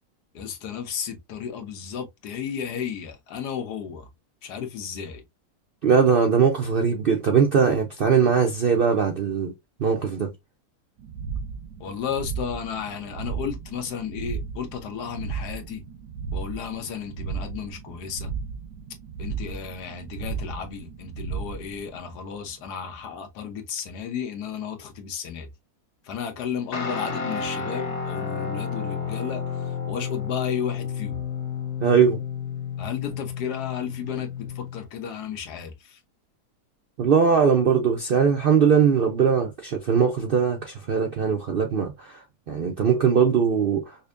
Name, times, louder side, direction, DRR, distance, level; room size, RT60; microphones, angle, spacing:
voice 1, 0.3-4.1 4.4-5.2 11.8-15.8 16.3-18.3 19.2-25.5 26.0-31.2 32.8-36.0, left 7 dB, 80° left, 1.4 m, -33 dB
voice 2, 5.8-9.5 9.8-10.3 31.8-32.2 37.0-44.0, right 6 dB, 65° right, 0.5 m, -21 dB
sound 1, 11.0-22.8, right 5 dB, 90° right, 1.2 m, -35 dB
Guitar, 26.7-34.9, left 6 dB, 55° left, 1.0 m, -31 dB
5.4 x 2.1 x 2.4 m
omnidirectional pair, 1.7 m